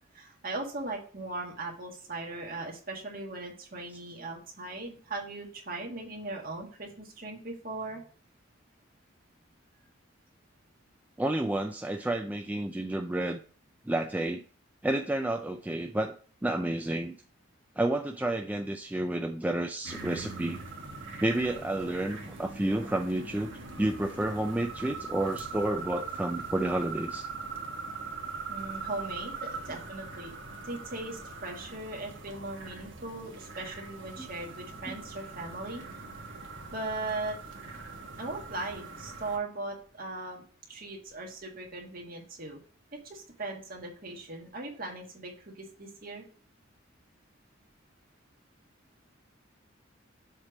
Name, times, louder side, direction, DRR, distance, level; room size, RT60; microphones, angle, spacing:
voice 1, 0.1-8.0 28.5-30.4 30.6-35.8 36.7-37.4 38.2-42.6 43.0-46.2, right 2 dB, 45° right, -1 dB, 1.8 m, -39 dB
voice 2, 11.2-13.4 13.9-14.4 14.8-16.2 16.4-17.2 17.8-20.6 21.2-23.5 23.8-27.3 34.2-34.3 34.9-35.0, right 1 dB, 10° right, 4 dB, 0.4 m, -30 dB
sound 1, 19.8-39.4, right 4 dB, 70° right, 1.5 m, -41 dB
7.3 x 3.3 x 6.0 m, 0.41 s
head